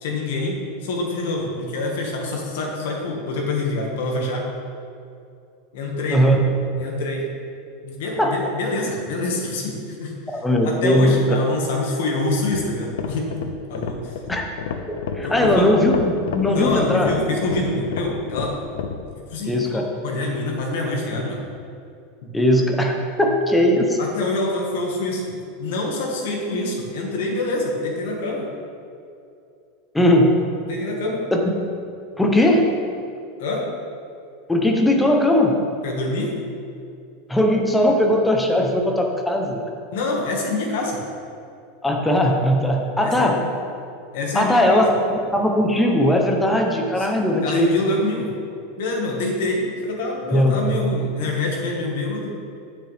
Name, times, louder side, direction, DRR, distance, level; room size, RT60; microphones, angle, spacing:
voice 1, 0.0-4.5 5.7-6.3 6.8-7.3 7.8-13.3 13.7-14.2 15.2-15.7 16.4-18.6 19.3-21.4 24.0-25.3 25.6-28.5 30.7-31.2 33.4-33.6 35.8-36.3 39.9-41.0 43.0-43.4 44.1-44.8 47.0-48.3 48.8-52.4, left 2 dB, 70° left, -1 dB, 1.8 m, -26 dB
voice 2, 6.1-6.4 8.2-8.3 10.3-11.2 14.3-14.4 14.9-17.1 19.5-19.9 22.3-22.9 23.2-24.0 29.9-30.4 31.3-31.4 32.2-32.7 34.5-35.6 37.3-39.6 41.8-43.3 44.3-47.7 50.3-51.0, left 1 dB, 5° left, 1 dB, 0.8 m, -19 dB
sound 1, 12.4-19.0, left 6 dB, 85° left, 0.7 m, -30 dB
9.0 x 7.4 x 3.5 m, 2.5 s
supercardioid pair, 165°, 0 cm